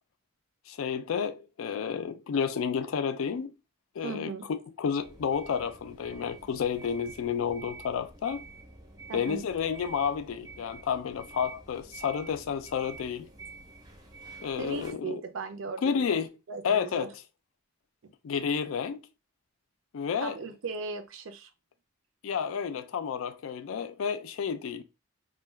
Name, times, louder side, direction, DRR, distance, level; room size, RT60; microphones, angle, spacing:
voice 1, 0.7-3.5 4.0-8.4 9.1-13.3 14.4-15.2 15.8-16.3 16.6-17.2 18.2-19.0 19.9-20.4 22.2-24.8, left 7 dB, 80° left, 0.4 m, -31 dB
voice 2, 4.0-4.5 9.1-9.4 14.6-16.2 16.5-17.1 18.0-18.1 20.2-21.5, right 4 dB, 70° right, 0.4 m, -37 dB
sound 1, 5.0-14.9, right 3 dB, 20° right, 0.5 m, -48 dB
2.2 x 2.2 x 3.2 m
head